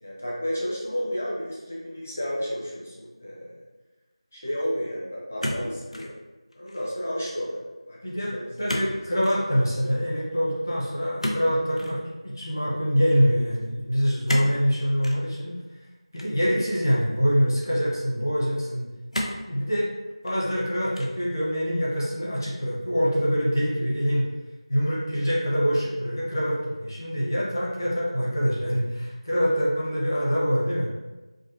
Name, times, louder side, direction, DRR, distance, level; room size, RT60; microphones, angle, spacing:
voice 1, 0.0-3.6 4.3-6.1 6.6-7.6 7.9-8.7 9.1-9.2 20.3-20.7, equal, 20° left, -5 dB, 0.5 m, -32 dB
sound 1, 5.4-6.2 6.5-6.9 8.7-8.9 9.2-9.4 11.2-12.0 14.3-14.6 15.0-15.2 16.2-16.9 17.6-17.7 19.1-19.5 20.1-20.6 20.9-21.3, left 1 dB, 80° left, 0.6 m, -32 dB
voice 2, 8.6-15.5 16.1-18.9 19.4-19.9 20.2-24.3 24.7-30.9, equal, 40° left, -7 dB, 0.9 m, -25 dB
4.7 x 2.0 x 2.7 m, 1.2 s
figure-of-eight pair, 175°, 3 cm